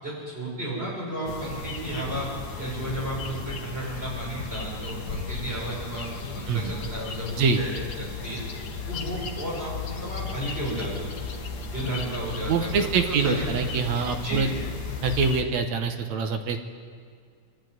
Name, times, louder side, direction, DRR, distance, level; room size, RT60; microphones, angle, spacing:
voice 1, 0.0-2.3 2.6-6.1 6.4-8.4 8.9-11.1 11.7-13.5 14.2-14.5, right 1 dB, 20° right, -5 dB, 7.1 m, -33 dB
sound 1, 1.3-15.4, left 4 dB, 45° left, 1.4 m, -35 dB
voice 2, 12.5-14.5 15.0-16.6, right 5 dB, 70° right, 6 dB, 2.2 m, -25 dB
24.0 x 12.0 x 9.4 m, 2.1 s
omnidirectional pair, 3.5 m